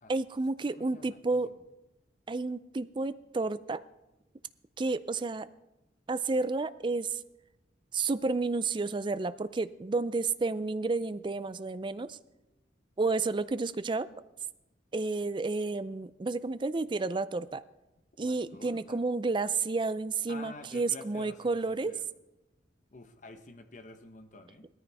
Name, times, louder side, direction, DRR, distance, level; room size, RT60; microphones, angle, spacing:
voice 1, 0.1-1.5 2.3-3.8 4.8-5.5 6.1-7.2 7.9-12.2 13.0-14.1 14.9-17.6 18.2-21.9, right 3 dB, 25° right, 15 dB, 0.4 m, -31 dB
voice 2, 0.8-1.5 18.2-19.0 20.3-22.0 22.9-24.7, left 2 dB, 45° left, 8 dB, 1.0 m, -49 dB
18.0 x 13.5 x 3.5 m, 0.97 s
head